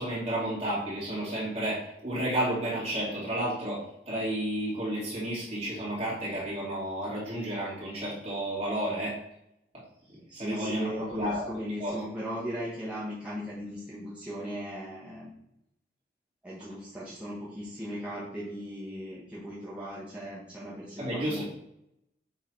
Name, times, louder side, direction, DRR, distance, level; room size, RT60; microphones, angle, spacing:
voice 1, 0.0-9.1 10.3-11.5 11.8-11.9 21.0-21.4, right 1 dB, 35° right, -7 dB, 2.7 m, -31 dB
voice 2, 10.0-15.3 16.4-21.4, equal, 5° right, -9 dB, 1.4 m, -38 dB
6.6 x 4.1 x 4.5 m, 0.80 s
head